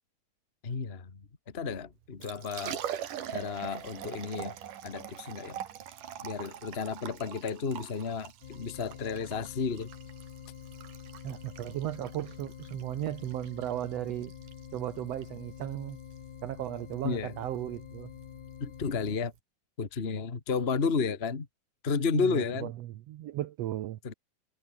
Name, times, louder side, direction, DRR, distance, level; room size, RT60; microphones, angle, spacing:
voice 1, 0.6-1.2 1.5-2.8 3.3-4.5 4.8-5.6 6.2-9.9 17.0-17.3 18.6-19.3 19.8-21.5 21.8-22.7 24.0-24.1, left 5 dB, 25° left, 1.4 m, -32 dB
Liquid, 2.0-19.4, right 10 dB, 70° right, 3.3 m, -44 dB
sound 1, 8.4-19.2, left 8 dB, 60° left, 3.8 m, -47 dB
voice 2, 11.2-14.3 14.7-16.0 16.4-18.1 22.1-24.0, right 13 dB, 85° right, 1.4 m, -36 dB
omnidirectional pair, 4.1 m